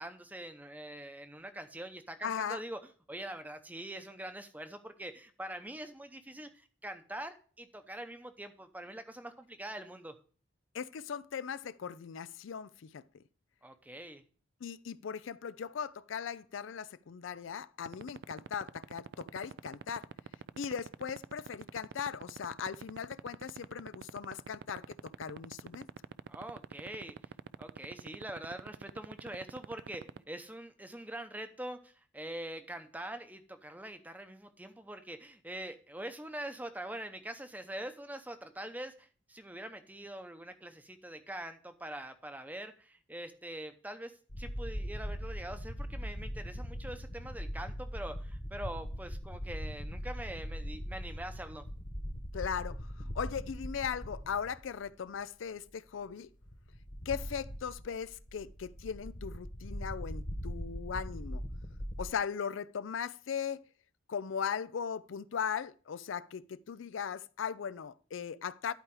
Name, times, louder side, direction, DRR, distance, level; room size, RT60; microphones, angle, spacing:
voice 1, 0.0-2.8 3.1-10.2 13.6-14.2 26.3-27.2 27.6-51.7, right 1 dB, 10° right, 0.7 m, -44 dB
voice 2, 2.2-2.6 10.7-13.2 14.6-20.1 20.6-25.9 52.3-52.8 53.1-56.3 57.1-61.4 62.0-63.6 64.1-68.7, left 7 dB, 75° left, 0.4 m, -38 dB
sound 1, 17.9-30.2, right 6 dB, 55° right, 0.3 m, -42 dB
sound 2, 44.3-54.9 55.2-55.3 56.4-62.0, equal, 40° left, 1.4 m, -40 dB
11.5 x 4.8 x 4.8 m
head